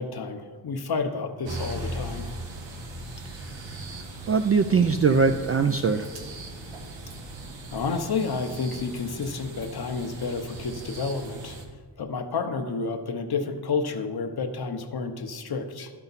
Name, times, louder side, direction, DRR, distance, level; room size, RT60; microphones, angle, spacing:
voice 1, 0.0-2.3 7.7-11.6 12.0-15.9, left 4 dB, 60° left, 7 dB, 0.9 m, -30 dB
sound 1, 1.4-11.6, right 1 dB, 85° right, 1.2 m, -39 dB
voice 2, 3.3-3.8 4.3-6.1, right 5 dB, 35° right, 6 dB, 0.4 m, -22 dB
12.0 x 5.8 x 4.0 m, 1.5 s
cardioid pair, 70°, 43 cm